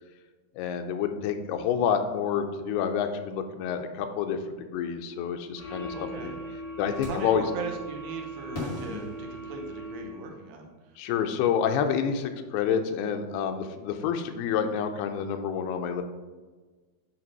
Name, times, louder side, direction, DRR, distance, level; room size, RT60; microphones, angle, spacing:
voice 1, 0.6-6.3 6.8-7.4 8.9-9.0 11.0-16.0, left 7 dB, 85° left, 6 dB, 2.6 m, -28 dB
sound 1, 5.6-10.4, right 1 dB, 60° left, 1.5 m, -40 dB
voice 2, 5.9-6.4 7.1-11.0, right 4 dB, 75° right, 2 dB, 2.5 m, -39 dB
sound 2, 7.0-7.5 8.5-10.1, left 2 dB, 30° left, 2.4 m, -39 dB
8.7 x 3.4 x 5.3 m, 1.3 s
omnidirectional pair, 4.6 m